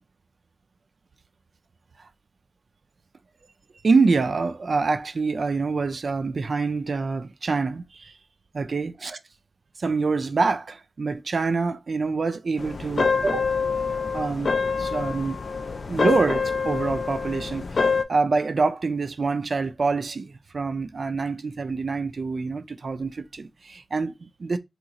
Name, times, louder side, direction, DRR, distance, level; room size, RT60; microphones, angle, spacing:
voice 1, 3.8-8.1 8.5-9.2 9.8-13.6 14.1-15.4 15.9-24.6, right 4 dB, 80° right, 0.3 m, -26 dB
sound 1, 12.6-18.0, left 4 dB, 80° left, 0.3 m, -26 dB
2.9 x 2.3 x 3.8 m
wide cardioid pair, 75°, 0 cm